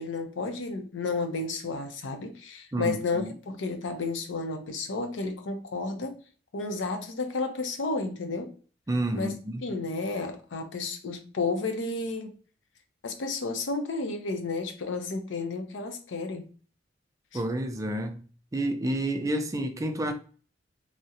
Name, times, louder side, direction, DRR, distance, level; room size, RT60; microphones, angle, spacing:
voice 1, 0.0-6.2 6.5-8.5 9.1-9.3 9.6-12.3 13.0-16.5 17.3-17.4, left 3 dB, 90° left, 0.6 m, -32 dB
voice 2, 2.7-3.3 8.9-9.7 17.3-18.3 18.5-20.1, right 1 dB, 20° right, 0.4 m, -30 dB
3.5 x 2.0 x 2.8 m
head